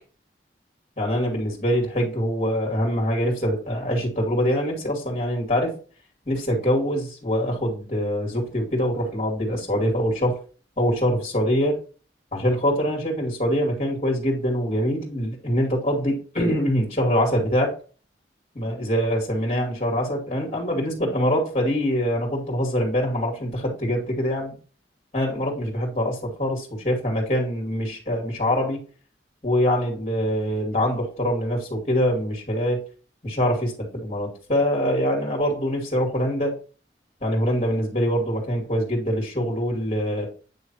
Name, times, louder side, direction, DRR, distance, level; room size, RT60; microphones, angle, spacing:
voice 1, 1.0-5.8 6.3-10.4 10.8-11.8 12.3-17.7 18.5-24.5 25.1-28.8 29.4-32.8 33.2-36.5 37.2-40.3, equal, 35° left, -1 dB, 2.4 m, -24 dB
9.0 x 3.2 x 4.4 m, 0.37 s
head